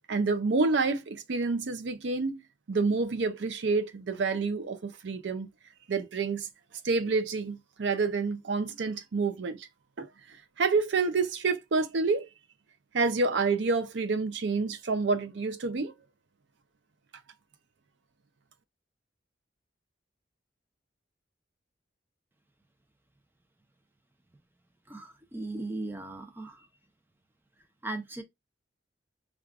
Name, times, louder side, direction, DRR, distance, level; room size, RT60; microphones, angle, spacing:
voice 1, 0.1-2.4 2.7-5.5 5.9-6.5 6.8-9.7 10.0-10.1 10.6-12.3 12.9-15.9, right 4 dB, 70° right, 0.5 m, -28 dB
voice 2, 24.9-26.7 27.8-28.2, right 2 dB, 10° right, 0.6 m, -37 dB
4.7 x 2.4 x 2.4 m
head